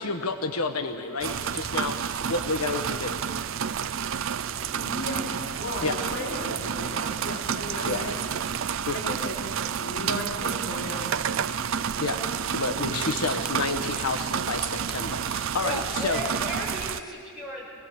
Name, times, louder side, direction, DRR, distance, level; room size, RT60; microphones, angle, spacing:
voice 1, 0.0-3.2 5.8-6.0 7.8-8.2 8.9-9.0 12.0-12.2 12.5-16.2, left 3 dB, 90° left, 6 dB, 1.1 m, -30 dB
sound 1, 1.2-17.0, right 7 dB, 60° right, 0.5 m, -30 dB
voice 2, 4.6-8.2 8.9-9.4 9.8-11.6, equal, 55° left, -4 dB, 5.0 m, -35 dB
voice 3, 15.5-17.7, left 1 dB, ahead, -5 dB, 6.0 m, -35 dB
26.5 x 18.5 x 8.0 m, 2.4 s
head